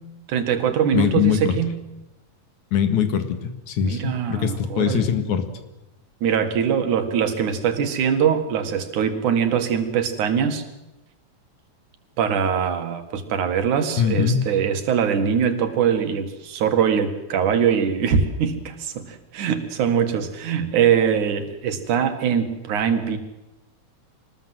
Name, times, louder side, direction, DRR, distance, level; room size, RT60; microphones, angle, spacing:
voice 1, 0.3-1.8 3.8-5.1 6.2-10.7 12.2-23.2, right 7 dB, 85° right, 7 dB, 3.4 m, -22 dB
voice 2, 0.9-1.5 2.7-5.5 14.0-14.4, left 8 dB, 80° left, 8 dB, 3.2 m, -22 dB
24.5 x 19.5 x 7.9 m, 0.98 s
omnidirectional pair, 3.4 m